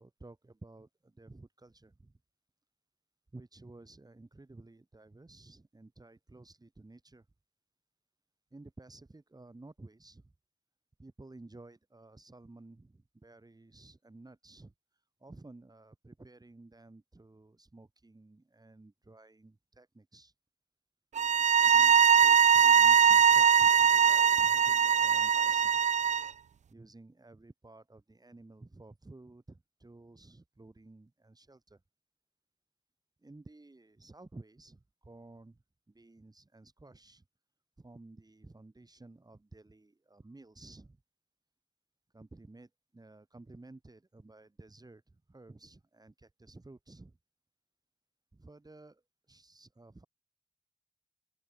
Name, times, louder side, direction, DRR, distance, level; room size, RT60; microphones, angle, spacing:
voice 1, 0.0-2.2 3.3-7.3 8.5-10.3 11.0-14.7 15.2-20.3 21.6-25.8 26.7-31.8 33.2-37.2 37.8-41.0 42.1-47.2 48.3-49.0 49.3-50.1, right 2 dB, 30° right, 8.0 m, -54 dB
sound 1, 21.2-26.3, right 7 dB, 70° right, 0.4 m, -22 dB
open air
wide cardioid pair, 90°, 12 cm